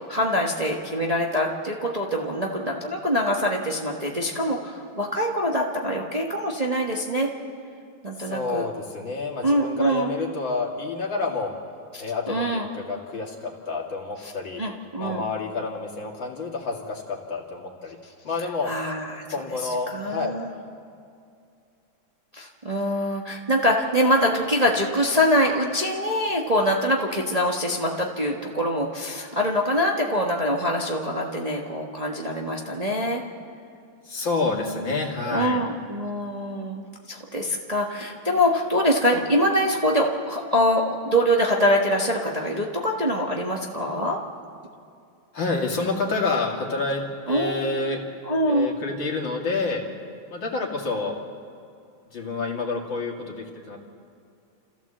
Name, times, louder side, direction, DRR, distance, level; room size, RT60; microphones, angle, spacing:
voice 1, 0.1-7.3 8.0-8.7 9.4-10.1 12.3-12.7 14.6-15.2 18.7-19.2 19.6-20.5 22.3-33.2 34.5-35.0 35.3-44.2 47.3-47.7 48.3-48.8, equal, 20° right, -1 dB, 1.3 m, -24 dB
voice 2, 8.2-11.5 12.0-14.6 15.0-18.0 18.2-18.7 19.3-20.3 34.0-35.6 45.3-48.0 48.5-49.8 50.3-51.2 52.1-53.8, left 3 dB, 65° left, 0 dB, 3.2 m, -28 dB
29.0 x 15.0 x 7.5 m, 2.4 s
omnidirectional pair, 2.3 m